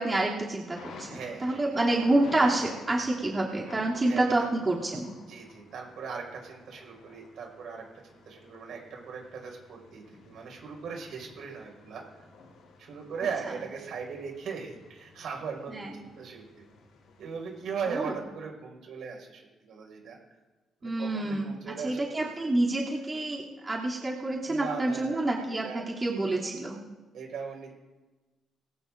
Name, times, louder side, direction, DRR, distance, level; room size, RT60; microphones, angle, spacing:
voice 1, 0.0-5.1 15.7-16.0 17.9-18.1 20.8-21.5 21.8-26.8, right 2 dB, 25° right, -5 dB, 2.9 m, -28 dB
Thunder, 0.8-18.2, left 4 dB, 85° left, 4.5 m, -52 dB
voice 2, 1.1-1.6 4.0-4.5 5.3-7.8 8.1-12.0 12.8-16.6 17.2-20.2 20.8-22.3 24.5-26.0 27.1-27.7, right 6 dB, 70° right, 1 dB, 5.3 m, -39 dB
21.0 x 18.0 x 2.6 m, 1.2 s
cardioid pair, 90°, 0 cm